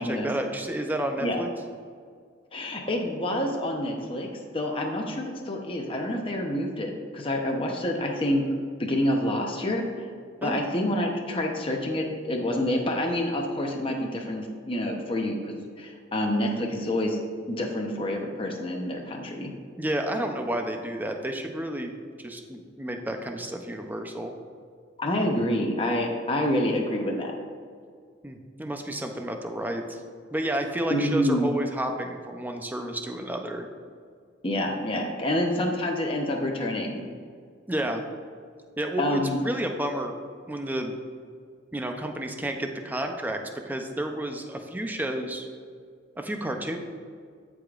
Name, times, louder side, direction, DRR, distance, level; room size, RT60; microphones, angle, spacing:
voice 1, 0.0-1.5 10.4-10.6 19.8-21.9 22.2-24.3 28.2-30.0 30.3-33.7 37.7-38.0 38.8-40.2 40.5-40.9 41.7-45.5 46.2-46.8, right 1 dB, 10° right, 4 dB, 0.6 m, -31 dB
voice 2, 2.5-4.3 4.5-8.4 8.8-10.1 10.4-17.2 17.5-19.5 25.0-27.3 30.9-31.5 34.4-37.0 39.0-39.4, left 1 dB, 25° left, 1 dB, 0.8 m, -27 dB
14.0 x 4.9 x 2.5 m, 2.1 s
head